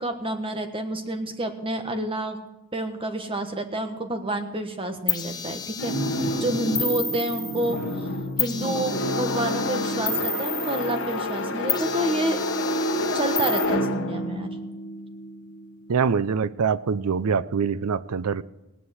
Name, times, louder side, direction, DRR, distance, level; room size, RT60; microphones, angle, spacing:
voice 1, 0.0-2.4 2.7-5.9 6.4-12.4 13.1-14.5, right 1 dB, 25° right, 1.4 m, -29 dB
sound 1, 5.1-8.0 8.4-11.3 11.7-13.6, left 4 dB, 20° left, 1.0 m, -31 dB
sound 2, 5.8-15.7, left 1 dB, 60° left, 1.5 m, -28 dB
voice 2, 15.9-18.4, right 6 dB, 85° right, 0.5 m, -24 dB
18.0 x 9.9 x 6.4 m
head